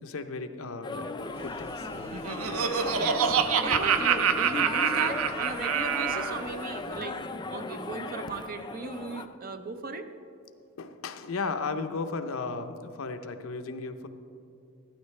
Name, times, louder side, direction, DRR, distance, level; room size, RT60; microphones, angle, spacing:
voice 1, 0.0-1.9 10.8-14.1, left 4 dB, 70° left, 7 dB, 0.7 m, -35 dB
sound 1, 0.8-9.3, left 3 dB, 20° left, 0.4 m, -37 dB
sound 2, 1.3-7.1, left 1 dB, 10° right, 1.0 m, -44 dB
Laughter, 2.0-6.4, right 7 dB, 80° right, 0.6 m, -26 dB
voice 2, 2.9-7.2 7.5-10.1, right 3 dB, 45° right, 8 dB, 0.7 m, -37 dB
13.0 x 12.0 x 3.2 m, 2.6 s
head